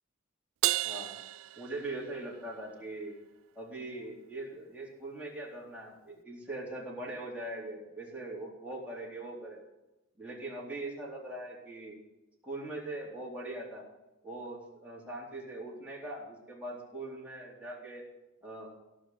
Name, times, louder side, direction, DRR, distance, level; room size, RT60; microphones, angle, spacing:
Crash cymbal, 0.6-2.4, right 15 dB, 75° right, 0.4 m, -32 dB
voice 1, 0.8-1.2 1.6-3.1 3.6-9.6 10.2-12.0 12.4-13.8 14.2-18.0 18.4-18.7, right 2 dB, 5° right, -4 dB, 3.9 m, -41 dB
17.0 x 6.3 x 9.3 m, 0.99 s
head